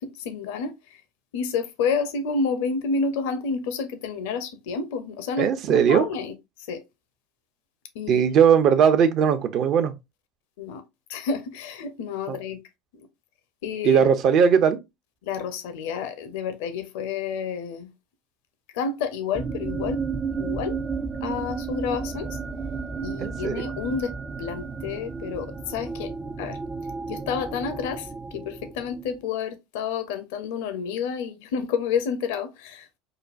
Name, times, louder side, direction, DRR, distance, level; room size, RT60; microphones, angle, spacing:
voice 1, 0.0-1.0 1.3-6.3 6.7-6.8 7.9-8.2 10.6-10.8 11.1-12.6 13.6-14.0 15.2-17.9 18.7-20.0 20.3-20.8 21.2-22.4 23.0-24.1 24.4-26.1 26.4-26.6 27.1-32.9, left 5 dB, 70° left, 0.7 m, -29 dB
voice 2, 5.4-6.0 8.1-9.9 12.3-12.4 13.8-14.8 23.2-23.7, right 7 dB, 50° right, 0.7 m, -19 dB
sound 1, 19.3-29.2, right 5 dB, 20° right, 0.4 m, -33 dB
5.1 x 2.2 x 2.5 m
hypercardioid pair, 75°, 0 cm